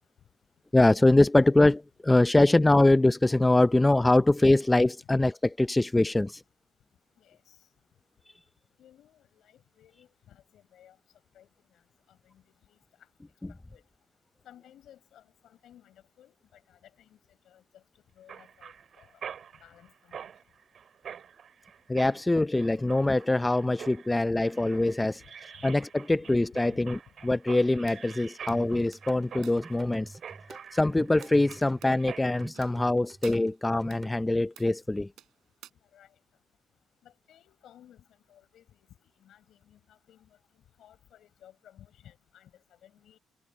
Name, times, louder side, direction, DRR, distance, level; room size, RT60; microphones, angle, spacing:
voice 1, 0.7-6.4 21.9-25.2 25.6-30.2 30.7-35.1, left 2 dB, 15° left, 0.6 m, -23 dB
voice 2, 7.2-7.6 8.8-11.0 11.3-11.8 12.1-12.8 13.7-13.8 14.4-17.8 18.2-19.1 19.3-20.3 25.6-25.7 26.7-26.8 35.9-36.1 37.0-40.4 40.8-42.5 42.8-43.2, left 11 dB, 75° left, 5.5 m, -57 dB
Mechanisms, 18.3-32.5, right 8 dB, 55° right, 3.7 m, -46 dB
sound 1, 27.9-28.0 28.5-29.8 30.5-30.6 31.2-32.0 32.5-32.9 33.2-34.0 34.6-34.8 35.2-35.7, right 12 dB, 80° right, 4.0 m, -52 dB
sound 2, 28.5-34.1, right 2 dB, 20° right, 2.4 m, -46 dB
cardioid pair, 90°, 0 cm